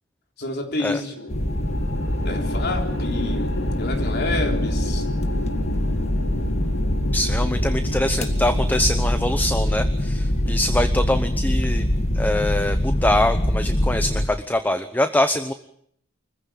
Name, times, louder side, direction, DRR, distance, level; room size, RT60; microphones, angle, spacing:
voice 1, 0.4-1.2 2.3-5.1, left 2 dB, 55° left, 3 dB, 3.7 m, -29 dB
sound 1, 1.2-13.5, left 2 dB, 75° left, 3.9 m, -34 dB
sound 2, 1.3-14.3, left 1 dB, 35° left, 1.8 m, -23 dB
voice 2, 7.1-11.8 12.1-15.5, left 1 dB, 10° left, 9 dB, 0.9 m, -24 dB
25.0 x 15.5 x 8.6 m, 0.70 s
head